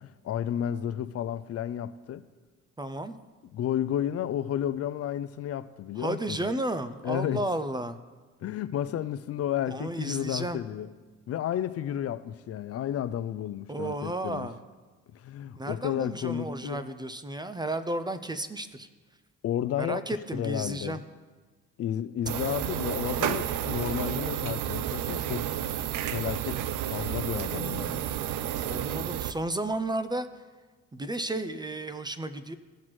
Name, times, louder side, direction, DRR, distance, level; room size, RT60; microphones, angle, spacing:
voice 1, 0.0-2.2 3.5-6.4 7.0-7.5 8.4-10.9 11.3-14.5 15.1-16.9 19.4-20.0 20.3-21.0 21.8-25.5 26.1-28.0, left 10 dB, 50° left, 0.4 m, -32 dB
voice 2, 2.8-3.2 6.0-8.0 9.7-10.6 13.7-14.6 15.6-18.9 19.8-21.0 28.6-30.3 30.9-32.6, right 1 dB, 15° right, 0.4 m, -33 dB
sound 1, 22.3-29.3, right 11 dB, 85° right, 0.5 m, -31 dB
16.0 x 5.8 x 3.1 m
cardioid pair, 90°, 30 cm